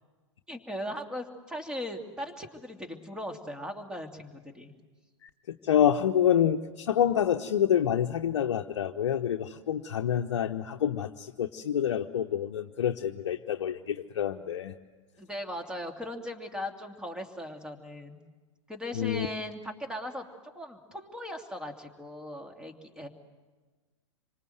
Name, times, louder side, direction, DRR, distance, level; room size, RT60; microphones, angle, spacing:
voice 1, 0.5-4.8 15.2-18.2 18.7-20.3 20.5-23.1, left 1 dB, 5° right, 5 dB, 2.7 m, -38 dB
voice 2, 5.2-14.7 18.9-19.3, left 9 dB, 60° left, 5 dB, 0.9 m, -27 dB
26.5 x 25.0 x 7.9 m, 1.3 s
figure-of-eight pair, 105°, 16 cm